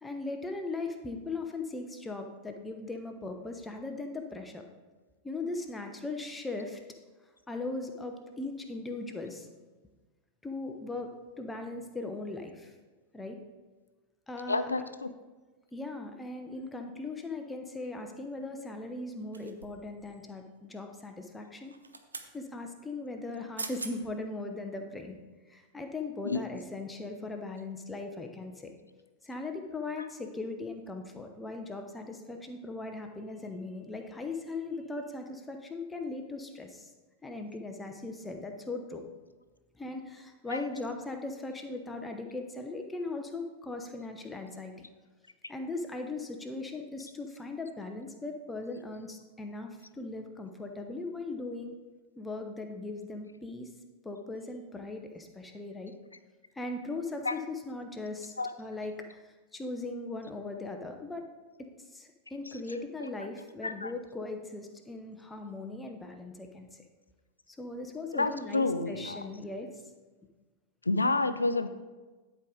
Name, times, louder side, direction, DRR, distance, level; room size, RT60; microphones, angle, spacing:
voice 1, 0.0-4.6 5.2-6.8 7.5-9.5 10.4-12.7 13.1-13.4 14.3-14.7 15.7-21.7 22.3-25.2 25.5-28.7 29.2-36.9 37.2-39.0 39.8-44.9 45.5-51.8 52.2-53.7 54.0-55.9 56.6-61.3 61.6-66.9 67.5-69.8, left 3 dB, 10° left, 4 dB, 0.9 m, -39 dB
voice 2, 14.5-15.1 26.2-26.4 40.5-40.6 57.3-57.4 58.4-58.5 63.6-63.9 68.1-69.2 70.9-71.7, left 3 dB, 80° left, 12 dB, 0.4 m, -29 dB
sound 1, 19.3-19.9 21.6-22.3 23.3-23.4 23.6-24.0 24.5-24.6, right 4 dB, 75° right, 0.6 m, -41 dB
11.0 x 4.9 x 3.9 m, 1.3 s
figure-of-eight pair, 90°, 0 cm